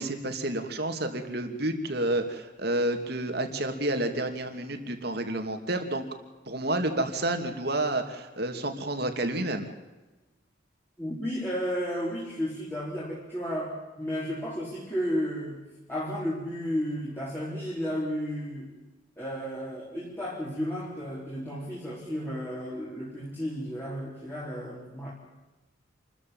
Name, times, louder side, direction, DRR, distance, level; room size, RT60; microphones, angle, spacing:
voice 1, 0.0-6.0 6.5-9.7, right 1 dB, 55° right, 6 dB, 2.8 m, -30 dB
voice 2, 11.0-15.6 15.9-18.8 19.2-25.1, equal, 10° left, -6 dB, 4.1 m, -33 dB
28.0 x 14.0 x 7.3 m, 1.1 s
head